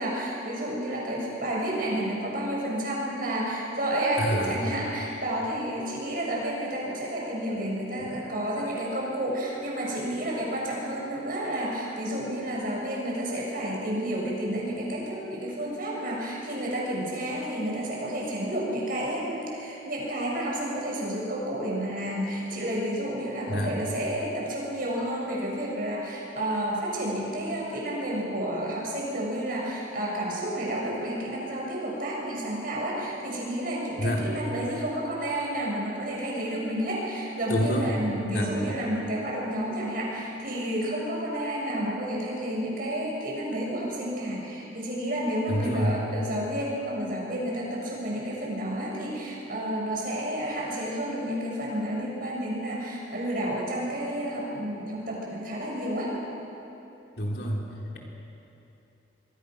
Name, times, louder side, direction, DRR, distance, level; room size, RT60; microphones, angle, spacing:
voice 1, 0.0-56.1, right 1 dB, 50° right, -3 dB, 6.8 m, -30 dB
voice 2, 4.2-4.6 8.0-8.1 23.5-23.8 34.0-34.2 37.5-37.9 38.3-38.5 45.5-46.0 57.2-57.6, equal, 60° left, -1 dB, 3.6 m, -27 dB
26.5 x 22.0 x 6.3 m, 3.0 s
head